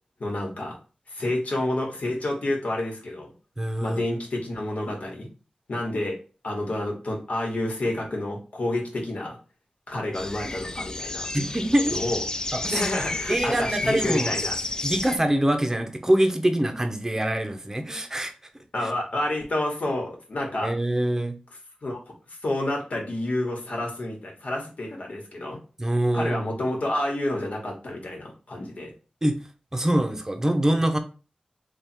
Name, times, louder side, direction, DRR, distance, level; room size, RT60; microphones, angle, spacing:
voice 1, 0.2-0.8 1.1-3.3 3.8-5.3 5.7-6.2 6.4-9.4 9.9-11.3 11.9-12.2 12.7-14.6 18.7-20.7 21.8-25.6 26.1-28.9, left 1 dB, 70° left, 1.3 m, -29 dB
voice 2, 3.6-4.0 11.3-12.0 12.5-12.8 13.3-14.3 14.8-18.3 18.8-18.9 20.6-21.4 25.8-26.6 29.2-29.4 29.7-31.0, right 1 dB, 20° right, 0.7 m, -24 dB
sound 1, 10.1-15.2, left 2 dB, 30° left, 0.3 m, -31 dB
3.5 x 2.4 x 4.4 m
wide cardioid pair, 85°, 2 cm